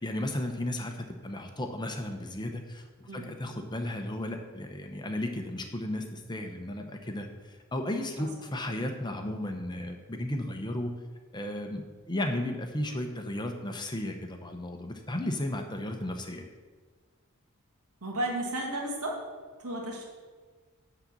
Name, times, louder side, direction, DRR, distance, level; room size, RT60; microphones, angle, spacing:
voice 1, 0.0-2.8 3.1-10.9 11.3-16.5, left 1 dB, 20° left, 5 dB, 0.8 m, -34 dB
voice 2, 18.0-19.1 19.6-20.0, right 1 dB, 85° right, -1 dB, 1.8 m, -33 dB
10.5 x 4.0 x 7.3 m, 1.5 s
head